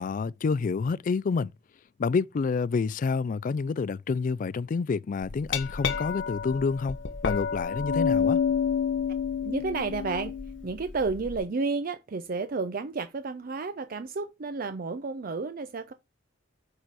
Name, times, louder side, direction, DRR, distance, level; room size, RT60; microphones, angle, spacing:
voice 1, 0.0-1.5 2.0-7.0 7.2-8.4, left 4 dB, 45° left, 0.3 m, -28 dB
Glass, 5.2-11.4, left 6 dB, 75° left, 1.0 m, -29 dB
voice 2, 9.4-10.4 10.6-15.9, right 4 dB, 50° right, 0.5 m, -31 dB
7.7 x 4.1 x 4.6 m
head